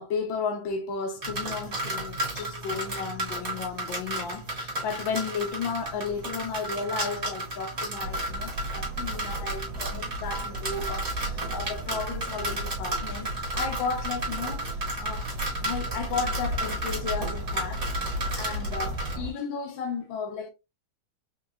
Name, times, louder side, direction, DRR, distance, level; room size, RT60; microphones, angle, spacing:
voice 1, 0.0-15.3 15.6-20.5, left 5 dB, 70° left, 1.6 m, -34 dB
sound 1, 1.2-19.1, right 2 dB, 40° right, 1.4 m, -33 dB
sound 2, 8.0-19.3, equal, 70° right, 1.4 m, -35 dB
3.8 x 2.9 x 2.4 m
omnidirectional pair, 2.2 m